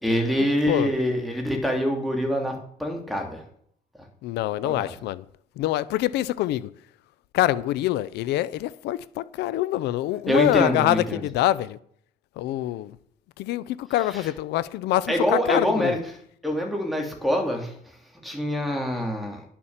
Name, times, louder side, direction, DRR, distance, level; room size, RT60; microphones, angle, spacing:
voice 1, 0.0-3.4 4.6-4.9 10.3-11.2 14.1-14.3 15.1-16.0 16.4-17.7 18.2-19.4, equal, ahead, 3.0 m, -25 dB
voice 2, 4.2-5.2 5.6-6.7 7.3-11.8 12.4-13.0 13.4-16.0, left 14 dB, 80° left, 0.6 m, -25 dB
10.5 x 7.0 x 7.3 m
cardioid pair, 110°, 17 cm